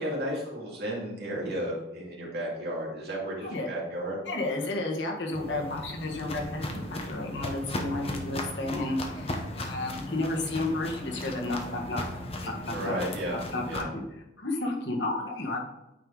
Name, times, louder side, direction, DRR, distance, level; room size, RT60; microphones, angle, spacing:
voice 1, 0.0-4.2 5.4-5.7 12.7-13.9, right 1 dB, 60° right, -4 dB, 2.4 m, -33 dB
voice 2, 4.3-12.1 12.4-13.0 13.3-14.0 14.4-15.7, left 2 dB, 75° left, 0 dB, 1.5 m, -32 dB
Walk footsteps, 5.3-13.8, left 1 dB, 30° left, 0.9 m, -37 dB
9.0 x 4.8 x 3.9 m, 0.92 s
head